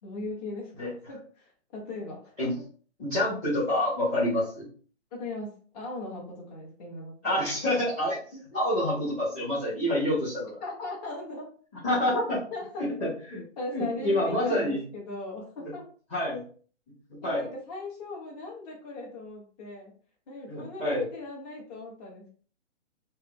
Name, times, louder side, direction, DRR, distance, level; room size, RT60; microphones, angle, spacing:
voice 1, 0.0-2.4 5.1-7.4 8.3-8.4 10.6-11.5 12.5-12.8 13.6-15.8 17.2-19.9 20.3-22.3, left 2 dB, 35° left, -3 dB, 1.1 m, -39 dB
voice 2, 3.0-4.7 7.2-8.2 8.5-10.6 11.8-12.4 12.8-13.4 13.7-14.8 15.6-15.7 16.1-16.4 17.1-17.4 20.5-21.0, left 1 dB, 15° left, -11 dB, 0.9 m, -27 dB
3.6 x 2.0 x 2.2 m, 0.43 s
hypercardioid pair, 150°, 37 cm